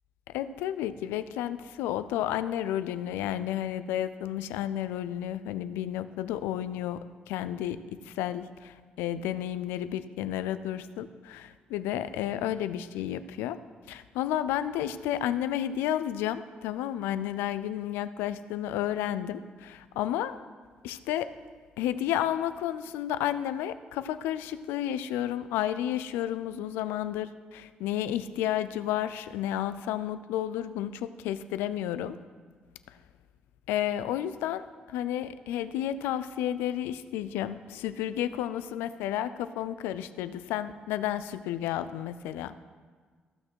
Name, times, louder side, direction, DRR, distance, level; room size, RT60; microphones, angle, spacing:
voice 1, 0.3-7.0 7.3-13.6 13.9-20.4 20.8-21.3 21.8-32.2 33.7-42.5, left 11 dB, 85° left, 13 dB, 0.4 m, -32 dB
15.0 x 6.3 x 4.6 m, 1.5 s
supercardioid pair, 50°, 4 cm